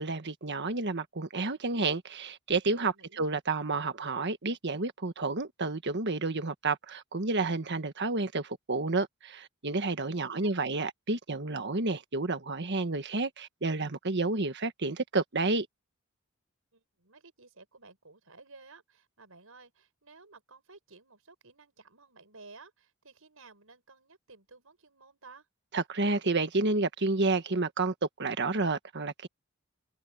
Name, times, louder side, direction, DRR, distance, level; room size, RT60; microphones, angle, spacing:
voice 1, 0.0-15.7 25.7-29.3, right 3 dB, 55° right, 1.5 m, -30 dB
voice 2, 2.9-3.2 10.2-10.5 16.7-25.5, right 3 dB, 75° right, 5.9 m, -55 dB
open air
head